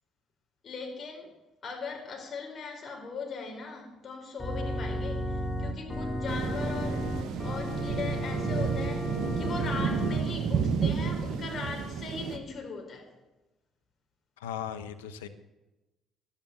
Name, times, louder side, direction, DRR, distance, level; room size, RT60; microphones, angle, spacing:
voice 1, 0.6-1.3 1.6-13.1, left 4 dB, 50° left, 1 dB, 4.8 m, -39 dB
Organ, 4.4-10.2, equal, 15° left, 3.8 m, -33 dB
sound 1, 6.3-12.4, right 6 dB, 65° right, 1.2 m, -31 dB
voice 2, 14.4-15.3, left 9 dB, 85° left, 9 dB, 0.9 m, -37 dB
12.0 x 10.5 x 7.8 m, 1.0 s
hypercardioid pair, 55°, 0 cm